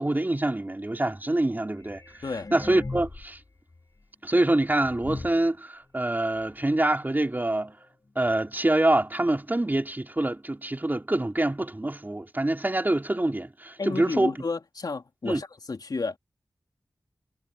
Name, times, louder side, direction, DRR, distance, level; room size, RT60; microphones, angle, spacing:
voice 1, 0.0-2.0 2.5-3.4 4.2-7.8 8.1-14.3 15.2-15.4, right 1 dB, 25° right, 3.2 m, -25 dB
sound 1, 1.8-3.4 3.7-3.8 4.4-4.5 4.8-5.5 6.2-6.3 6.6-6.7 7.0-7.3 8.1-8.2 8.5-8.6 9.2-9.3 9.6-9.7, left 3 dB, 50° left, 3.8 m, -39 dB
voice 2, 13.8-16.2, left 4 dB, 70° left, 3.1 m, -32 dB
cardioid pair, 45°, 7 cm